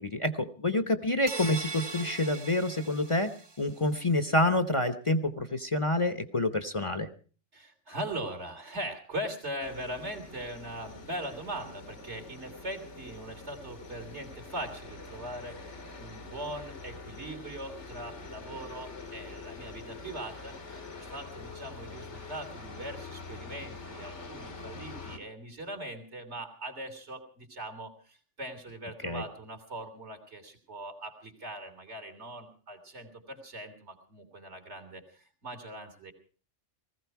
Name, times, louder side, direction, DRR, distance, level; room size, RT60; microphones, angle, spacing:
voice 1, 0.0-3.3 3.6-7.1 29.0-29.2, left 1 dB, 30° left, 8 dB, 0.9 m, -28 dB
sound 1, 1.3-3.7, right 4 dB, 25° right, 0.7 m, -40 dB
voice 2, 7.5-36.1, right 1 dB, 70° right, 5 dB, 3.2 m, -41 dB
sound 2, 9.6-25.2, left 3 dB, 80° left, 2.2 m, -45 dB
19.5 x 15.5 x 4.6 m, 0.39 s
omnidirectional pair, 1.2 m